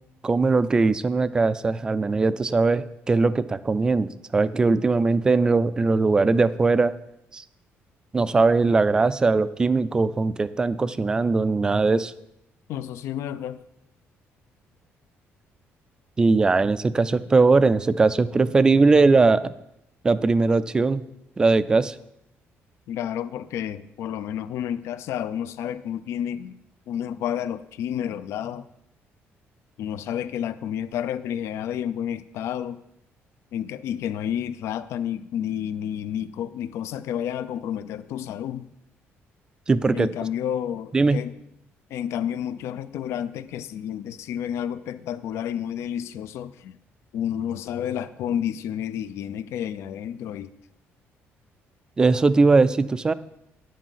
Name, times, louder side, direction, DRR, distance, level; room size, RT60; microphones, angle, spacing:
voice 1, 0.2-6.9 7.3-7.4 8.1-12.1 16.2-19.5 20.0-21.0 21.4-21.9 39.7-40.1 40.9-41.2 52.0-53.1, right 3 dB, 15° right, 15 dB, 0.3 m, -20 dB
voice 2, 12.7-13.6 22.9-26.6 26.9-28.7 29.8-32.8 33.5-38.7 39.9-41.3 41.9-46.8 47.1-50.5, left 9 dB, 70° left, 14 dB, 0.5 m, -30 dB
10.0 x 7.5 x 5.7 m, 0.82 s
cardioid pair, 175°, 5 cm